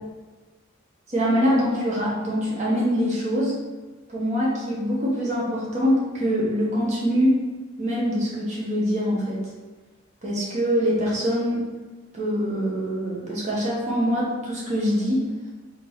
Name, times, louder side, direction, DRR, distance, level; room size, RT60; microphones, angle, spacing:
voice 1, 1.1-3.6 4.1-7.4 7.8-9.5 10.2-11.6 12.1-15.3, equal, 35° right, -5 dB, 1.1 m, -24 dB
3.7 x 2.9 x 3.9 m, 1.2 s
head